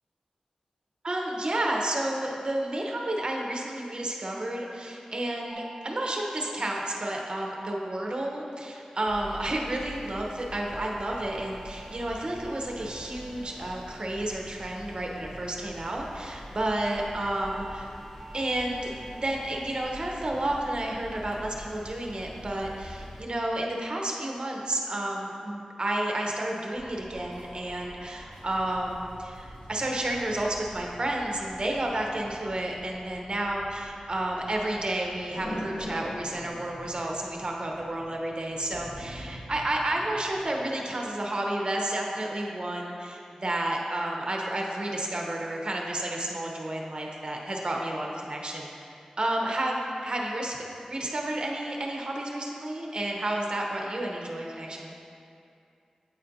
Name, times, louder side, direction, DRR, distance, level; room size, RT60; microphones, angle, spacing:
voice 1, 1.0-17.9 18.3-48.7 49.2-50.6 50.9-54.9, right 1 dB, 45° right, -1 dB, 0.8 m, -31 dB
sound 1, 5.5-10.0 11.1-15.6 16.7-17.0 17.4-17.8 18.2-18.6 19.0-19.4 19.8-20.2 20.6-21.0, right 2 dB, 25° right, 0.4 m, -50 dB
sound 2, 9.1-23.2, equal, 15° left, 0.7 m, -45 dB
sound 3, 26.7-40.6, equal, 70° left, 1.5 m, -45 dB
8.5 x 4.2 x 2.6 m, 2.5 s
wide cardioid pair, 60°, 2 cm